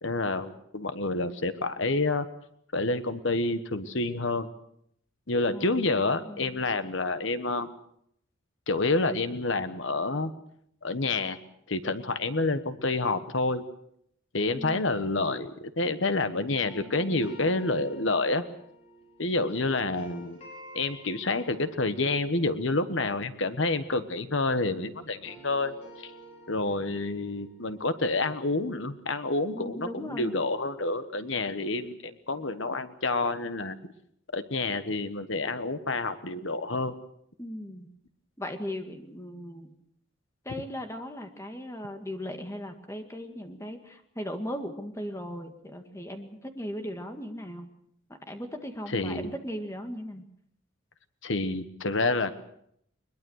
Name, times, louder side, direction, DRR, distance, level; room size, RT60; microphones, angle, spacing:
voice 1, 0.0-2.3 2.7-4.5 5.3-7.7 8.7-10.3 10.8-11.4 11.7-13.6 14.3-18.4 19.2-20.4 20.7-25.7 26.0-26.1 26.5-33.8 34.3-37.0 48.9-49.3 51.2-52.3, left 3 dB, 60° left, 11 dB, 1.3 m, -28 dB
voice 2, 5.5-6.5 14.6-14.8 29.5-30.3 37.4-37.9 38.4-39.7 40.5-47.7 48.1-50.3, equal, 15° left, 5 dB, 1.9 m, -38 dB
sound 1, 16.6-24.7 25.0-29.9, right 1 dB, 30° left, 5.8 m, -51 dB
22.0 x 21.5 x 6.4 m, 0.70 s
head